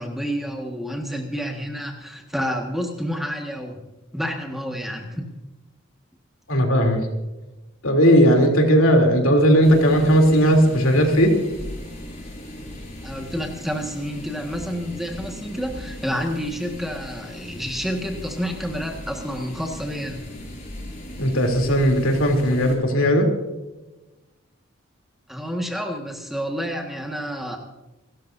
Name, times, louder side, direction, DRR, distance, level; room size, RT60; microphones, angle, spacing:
voice 1, 0.0-3.8 4.1-5.3 13.0-20.2 25.3-27.6, equal, ahead, 1 dB, 1.7 m, -29 dB
voice 2, 6.5-7.0 7.8-11.3 21.2-23.3, equal, 85° left, 2 dB, 3.2 m, -17 dB
sound 1, 9.6-22.8, left 1 dB, 35° left, 5.9 m, -38 dB
28.5 x 13.5 x 2.7 m, 1.1 s
head